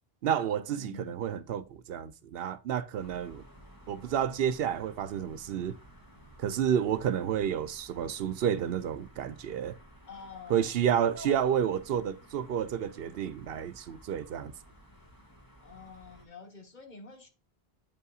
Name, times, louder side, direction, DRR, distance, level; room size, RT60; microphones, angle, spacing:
voice 1, 0.2-3.4 3.9-5.8 6.4-9.8 10.5-14.5, right 9 dB, 70° right, 0.8 m, -30 dB
voice 2, 0.8-1.4 10.1-10.7 11.1-11.4 15.6-17.3, left 4 dB, 50° left, 1.4 m, -47 dB
sound 1, 3.0-16.3, equal, 20° left, 1.9 m, -55 dB
8.7 x 5.4 x 2.3 m
omnidirectional pair, 1.0 m